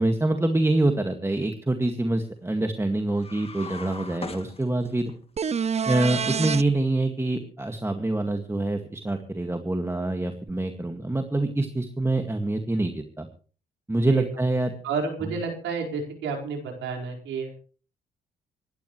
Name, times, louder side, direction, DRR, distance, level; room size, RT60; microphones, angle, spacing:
voice 1, 0.0-5.1 5.9-13.3 13.9-14.7, right 2 dB, 15° right, 5 dB, 2.1 m, -25 dB
sound 1, 3.2-5.2, left 3 dB, 30° left, 2.2 m, -39 dB
sound 2, 5.4-6.6 10.5-10.6, right 6 dB, 35° right, 0.6 m, -26 dB
voice 2, 14.8-17.6, right 5 dB, 75° right, 1 dB, 4.8 m, -30 dB
25.5 x 12.0 x 3.2 m, 0.41 s
hypercardioid pair, 50°, 20 cm